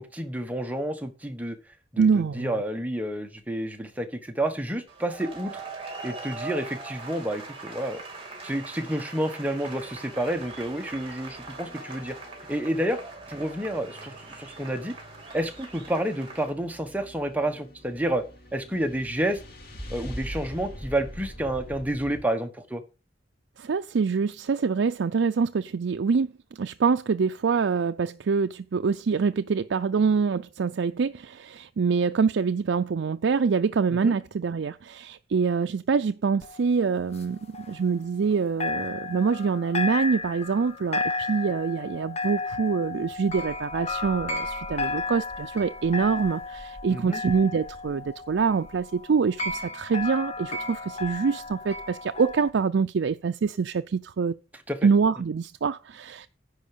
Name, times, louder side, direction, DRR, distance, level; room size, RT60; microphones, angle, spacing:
voice 1, 0.0-1.6 1.9-5.6 6.0-8.0 8.4-12.2 12.5-13.0 13.3-15.0 15.3-18.2 18.5-19.4 19.9-22.8 33.9-34.1 46.9-47.2 54.7-54.8, right 1 dB, 10° right, 1.2 m, -29 dB
voice 2, 2.0-2.5 23.6-54.4 54.8-56.3, right 5 dB, 70° right, 0.4 m, -25 dB
sound 1, 4.9-16.5, right 3 dB, 30° right, 3.0 m, -41 dB
sound 2, 9.7-22.2, equal, 55° left, 2.5 m, -45 dB
sound 3, 36.4-38.3 38.6-52.5, left 3 dB, 35° left, 1.2 m, -34 dB
10.5 x 4.6 x 6.8 m
head